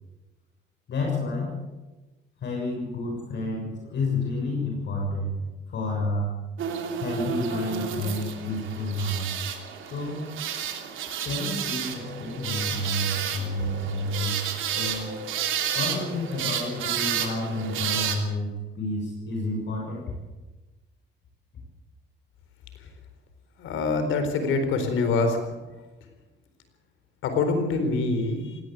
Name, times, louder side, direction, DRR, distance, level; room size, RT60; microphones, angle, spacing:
voice 1, 0.9-1.5 2.4-5.4 5.7-6.3 7.0-9.3 9.8-10.4 11.2-15.2 15.7-20.1, left 2 dB, 65° left, -1 dB, 6.8 m, -30 dB
sound 1, 6.6-18.2, right 8 dB, 80° right, 3.0 m, -31 dB
voice 2, 23.6-25.4 27.2-28.5, left 3 dB, 85° left, 7 dB, 4.2 m, -25 dB
18.5 x 17.5 x 8.3 m, 1.1 s
cardioid pair, 90°, 20 cm